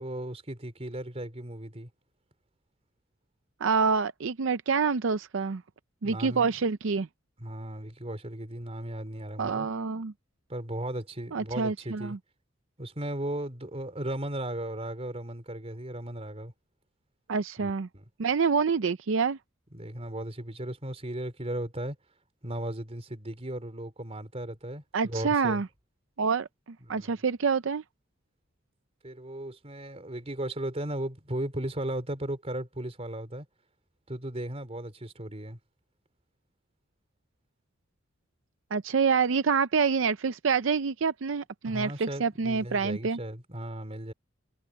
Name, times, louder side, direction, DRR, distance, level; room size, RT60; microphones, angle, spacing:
voice 1, 0.0-1.9 6.0-6.5 7.4-9.7 10.5-12.2 12.8-16.5 17.6-18.1 19.7-22.0 22.4-25.6 26.8-27.1 29.0-33.5 34.1-35.6 41.6-44.1, right 1 dB, 30° right, 3.8 m, -36 dB
voice 2, 3.6-5.6 6.0-7.1 9.4-10.1 11.3-12.2 17.3-17.9 18.2-19.4 24.9-25.7 26.2-26.5 26.9-27.8 38.7-43.2, right 5 dB, 70° right, 0.5 m, -27 dB
head